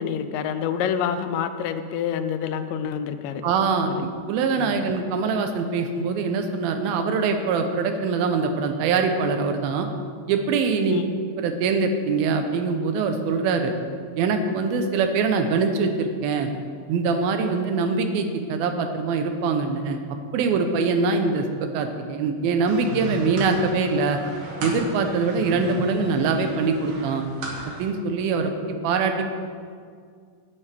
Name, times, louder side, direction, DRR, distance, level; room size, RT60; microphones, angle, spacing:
voice 1, 0.0-3.4 4.6-4.9 10.9-11.2, left 8 dB, 80° left, 10 dB, 2.1 m, -27 dB
voice 2, 3.4-9.9 10.3-11.0 11.3-13.7 14.2-16.5 16.9-20.0 20.3-24.2 24.6-27.3 27.8-28.5 28.8-29.2, right 4 dB, 90° right, 6 dB, 2.7 m, -23 dB
sound 1, 22.6-27.9, right 2 dB, 65° right, 3.6 m, -34 dB
18.0 x 8.6 x 3.5 m, 2.1 s
omnidirectional pair, 4.1 m